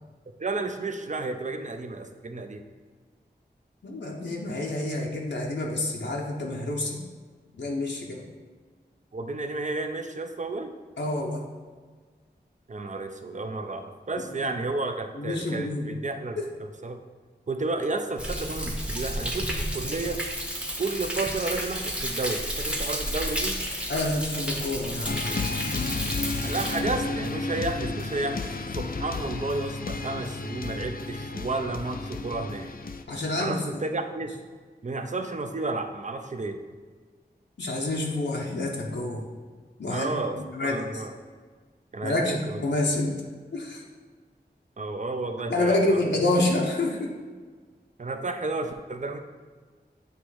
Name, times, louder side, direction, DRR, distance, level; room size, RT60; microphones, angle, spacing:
voice 1, 0.4-2.6 9.1-10.7 12.7-17.0 17.5-20.2 20.8-23.6 26.4-32.7 33.4-34.3 34.8-36.6 39.9-41.1 41.9-42.6 44.8-46.0 48.0-49.2, right 3 dB, 45° right, 6 dB, 0.5 m, -32 dB
voice 2, 3.8-7.0 7.6-8.2 11.0-11.4 15.1-15.9 23.9-25.2 25.5-25.7 33.1-33.8 37.6-39.2 39.8-40.2 40.5-41.0 42.0-43.2 43.5-43.8 45.5-47.1, left 2 dB, 85° left, -2 dB, 0.8 m, -28 dB
Thunder, 18.2-26.8, equal, 5° right, 0.8 m, -31 dB
sound 1, 25.1-33.0, left 3 dB, 55° left, 0.4 m, -32 dB
8.1 x 3.0 x 4.7 m, 1.5 s
wide cardioid pair, 65°, 18 cm